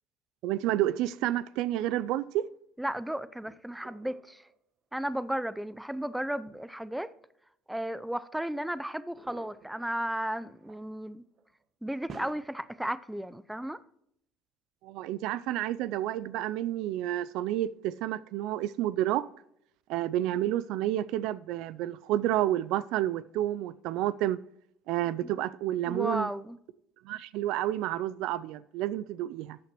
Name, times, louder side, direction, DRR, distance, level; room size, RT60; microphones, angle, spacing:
voice 1, 0.4-2.4 14.8-19.3 19.9-24.4 24.9-26.3 27.0-29.6, right 13 dB, 70° right, 0.3 m, -30 dB
voice 2, 2.8-4.4 4.9-7.1 7.7-11.2 11.8-13.8 25.2-25.3 25.9-26.6, right 1 dB, 5° right, 0.5 m, -34 dB
sound 1, 3.3-4.6 5.0-5.1 6.3-6.6 7.7-7.8 9.1-11.0 11.3-11.6 11.9-12.3, right 4 dB, 45° right, 1.2 m, -51 dB
13.5 x 8.4 x 3.0 m
hypercardioid pair, 75°, 0 cm